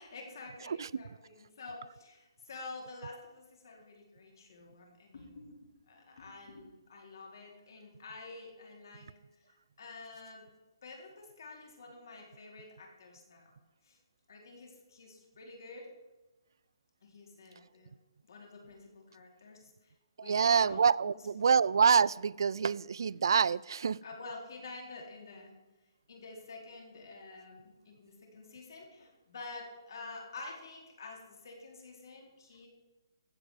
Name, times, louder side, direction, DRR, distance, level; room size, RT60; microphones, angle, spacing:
voice 1, 0.0-9.1 9.8-10.5 10.8-13.5 13.8-14.0 14.3-15.9 17.0-17.9 18.3-19.9 20.2-21.5 24.0-25.5 26.1-32.7, left 3 dB, 55° left, 0 dB, 4.2 m, -49 dB
voice 2, 20.2-24.0, right 6 dB, 65° right, 19 dB, 0.3 m, -26 dB
15.5 x 6.0 x 8.2 m, 1.1 s
hypercardioid pair, 175°, 2 cm